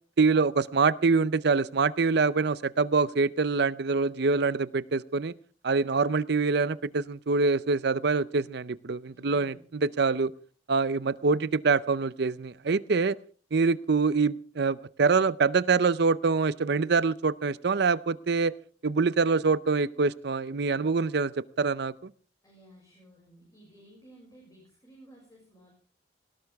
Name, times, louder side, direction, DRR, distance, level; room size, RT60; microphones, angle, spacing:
voice 1, 0.2-5.3 5.6-9.5 9.8-10.3 10.7-13.2 13.5-18.5 18.8-22.1, right 4 dB, 65° right, 17 dB, 0.6 m, -25 dB
voice 2, 9.1-9.6 22.4-25.7, right 1 dB, 20° left, -2 dB, 6.1 m, -55 dB
19.0 x 17.5 x 3.5 m, 0.40 s
head